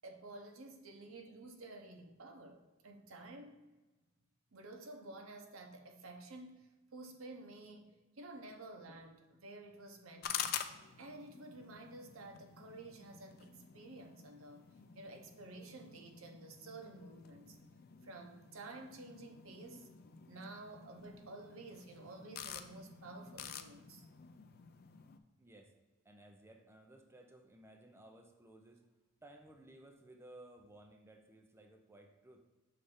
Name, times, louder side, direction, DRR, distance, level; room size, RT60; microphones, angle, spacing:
voice 1, 0.0-3.6 4.5-7.9 8.2-10.6 11.0-14.7 15.0-17.6 18.0-19.9 20.3-24.1, right 2 dB, 85° right, 4 dB, 0.9 m, -52 dB
sound 1, 10.2-25.2, left 9 dB, 50° left, 0.4 m, -48 dB
voice 2, 25.4-25.7 26.0-28.9 29.2-32.4, right 1 dB, 10° right, 3 dB, 0.5 m, -58 dB
6.5 x 3.3 x 5.5 m, 1.2 s
head